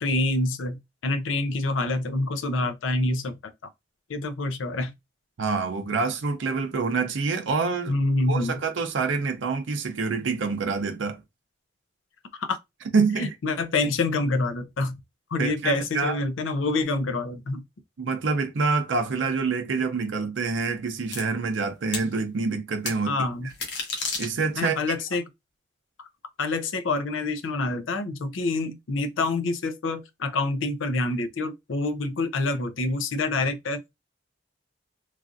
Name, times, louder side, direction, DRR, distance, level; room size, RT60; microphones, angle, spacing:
voice 1, 0.0-3.5 4.1-4.9 7.9-8.6 12.3-12.6 13.2-15.0 15.3-17.6 23.1-23.5 24.6-25.2 26.0-26.1 26.4-33.8, left 2 dB, 85° left, 0.5 m, -27 dB
voice 2, 5.4-8.0 8.3-11.2 12.9-13.3 15.4-16.2 18.0-23.2 24.2-24.8, right 4 dB, 75° right, 0.5 m, -26 dB
sound 1, 21.1-21.2 21.9-22.1 22.9-23.0 23.5-24.7, left 4 dB, 60° left, 0.8 m, -31 dB
3.1 x 2.4 x 2.5 m
head